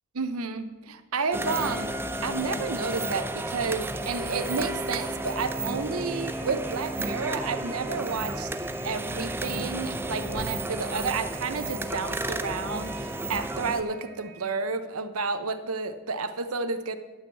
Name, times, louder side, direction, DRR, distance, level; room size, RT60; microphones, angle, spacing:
voice 1, 0.1-8.5 8.8-17.0, right 4 dB, 75° right, 10 dB, 0.8 m, -31 dB
sound 1, 1.3-13.8, right 1 dB, 10° right, 0.4 m, -32 dB
sound 2, 3.3-14.6, right 3 dB, 10° left, 1.4 m, -50 dB
10.5 x 6.1 x 8.0 m, 1.3 s
head